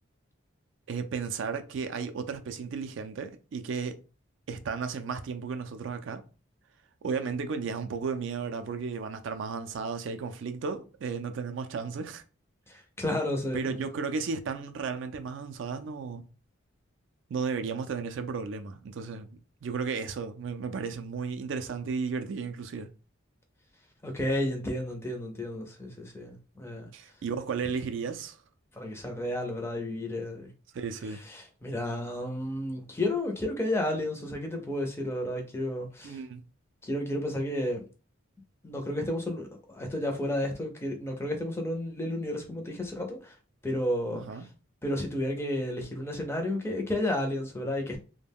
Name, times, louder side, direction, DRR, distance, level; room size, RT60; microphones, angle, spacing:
voice 1, 0.9-4.0 4.5-6.2 7.0-12.2 13.5-16.3 17.3-19.3 19.6-22.9 26.9-28.4 30.7-31.2 36.0-36.4 44.1-44.4, right 5 dB, 60° right, 0.3 m, -34 dB
voice 2, 12.7-13.8 24.0-26.9 28.7-30.5 31.1-36.2 36.8-37.8 38.6-43.4 43.6-44.5 44.8-48.0, left 1 dB, 10° left, 0.4 m, -32 dB
2.3 x 2.1 x 3.4 m
head